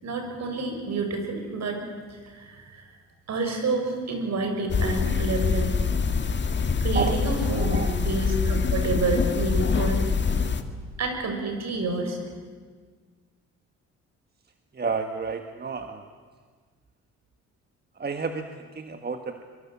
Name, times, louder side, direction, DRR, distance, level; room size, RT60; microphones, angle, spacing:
voice 1, 0.0-1.8 2.1-2.9 3.3-5.7 6.8-10.0 11.0-12.2, right 3 dB, 60° right, 5 dB, 6.1 m, -29 dB
sound 1, 4.7-10.6, left 5 dB, 35° left, 2.0 m, -25 dB
voice 2, 7.5-8.0 14.7-16.0 18.0-19.4, right 4 dB, 35° right, 6 dB, 1.6 m, -30 dB
24.0 x 23.5 x 8.8 m, 1.5 s
cardioid pair, 90°, 30 cm